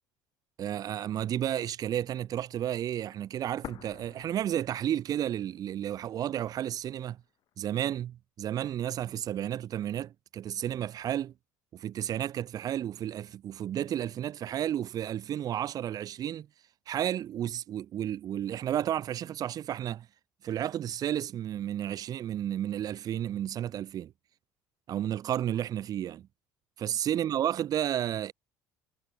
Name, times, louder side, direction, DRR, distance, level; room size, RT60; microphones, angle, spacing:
voice 1, 0.6-7.2 7.6-11.3 11.7-16.5 16.9-20.1 20.4-24.1 24.9-26.3 26.8-28.3, right 11 dB, 50° right, 3.2 m, -32 dB
sound 1, 3.6-5.6 5.9-6.0 6.7-7.6, left 12 dB, 55° left, 6.6 m, -48 dB
supercardioid pair, 80°, 8 cm